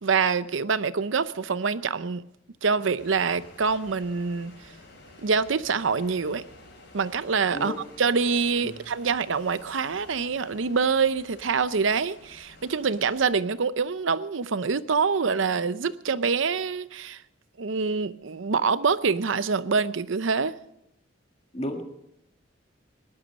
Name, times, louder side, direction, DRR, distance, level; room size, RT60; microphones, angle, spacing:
voice 1, 0.0-2.2 2.6-4.5 5.2-6.4 6.9-17.2 17.6-20.6, right 5 dB, 70° right, 15 dB, 0.6 m, -25 dB
sound 1, 3.0-13.3, left 2 dB, 60° left, 5.0 m, -51 dB
voice 2, 7.5-7.8 8.6-8.8 21.5-21.8, left 1 dB, 30° left, 4 dB, 1.6 m, -32 dB
19.0 x 11.5 x 5.2 m, 0.82 s
head